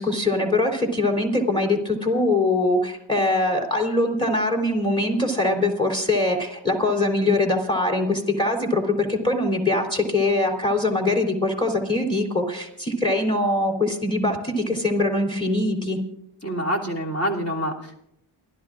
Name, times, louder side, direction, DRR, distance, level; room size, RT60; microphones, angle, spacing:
voice 1, 0.0-16.0, left 2 dB, 10° left, 1 dB, 3.6 m, -22 dB
voice 2, 16.4-17.9, equal, 35° left, -2 dB, 3.1 m, -26 dB
29.0 x 13.0 x 2.5 m, 0.78 s
cardioid pair, 65°, 43 cm